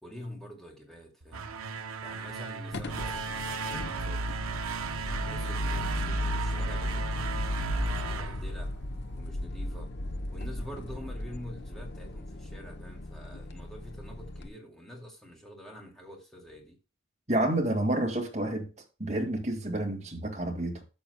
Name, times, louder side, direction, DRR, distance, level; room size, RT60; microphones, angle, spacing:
voice 1, 0.0-1.5 2.0-4.4 5.1-8.7 9.2-9.9 10.3-16.8, equal, ahead, 2.3 m, -46 dB
sound 1, 1.2-9.2, right 4 dB, 85° right, 0.9 m, -36 dB
sound 2, 2.7-14.5, left 1 dB, 50° left, 0.7 m, -35 dB
voice 2, 17.3-18.7 19.0-20.8, right 1 dB, 30° right, 1.9 m, -29 dB
13.0 x 7.0 x 2.2 m
head